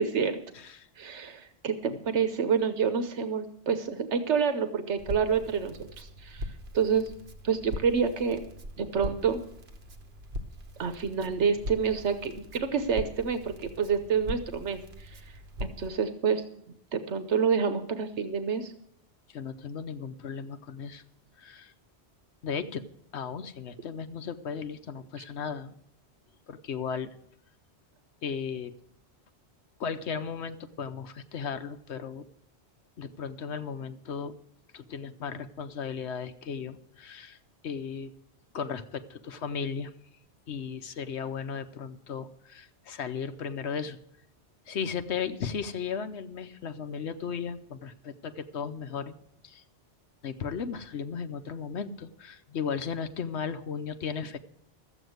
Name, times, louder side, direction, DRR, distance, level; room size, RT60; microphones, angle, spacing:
voice 1, 0.0-0.4 1.0-6.5 6.7-7.1 7.4-8.4 8.8-9.4 10.8-15.2 15.6-16.4 16.9-18.7, right 6 dB, 85° right, 9 dB, 1.2 m, -28 dB
voice 2, 0.5-0.9 1.9-2.0 19.3-21.0 21.4-21.7 22.4-22.8 23.1-25.7 26.5-27.1 28.2-28.7 29.8-32.3 33.0-34.3 34.7-37.4 37.6-38.1 38.5-39.9 40.5-44.0 44.7-49.1 49.4-49.6 50.2-54.4, left 6 dB, 75° left, 10 dB, 1.1 m, -35 dB
Crackle, 5.0-15.9, left 1 dB, 65° right, 1.4 m, -41 dB
13.0 x 8.1 x 7.9 m, 0.71 s
omnidirectional pair, 1.2 m